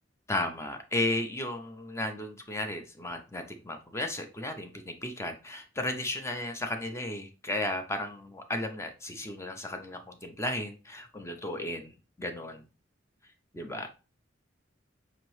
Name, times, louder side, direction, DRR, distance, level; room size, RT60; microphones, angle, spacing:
voice 1, 0.3-11.9 12.2-12.6 13.5-13.9, left 1 dB, 15° left, 0.5 m, -34 dB
5.3 x 2.9 x 3.0 m
head